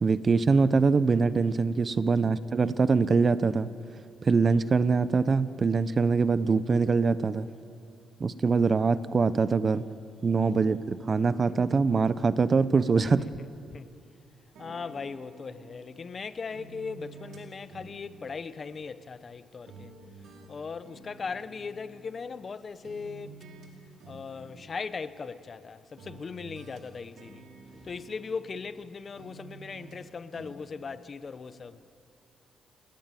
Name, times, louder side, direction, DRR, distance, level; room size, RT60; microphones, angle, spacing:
voice 1, 0.0-3.7 4.2-7.5 8.2-9.8 10.2-13.3, right 4 dB, 35° right, 0.8 m, -23 dB
voice 2, 13.0-13.9 14.6-19.9 20.5-23.3 24.1-31.8, left 5 dB, 40° left, 1.0 m, -39 dB
sound 1, 14.5-16.1 16.5-19.4 19.7-22.5 22.8-23.7 24.0-25.6 26.0-28.9 29.2-30.0 30.3-30.5, right 3 dB, 75° right, 5.2 m, -51 dB
29.0 x 18.5 x 9.1 m
cardioid pair, 90°, 0 cm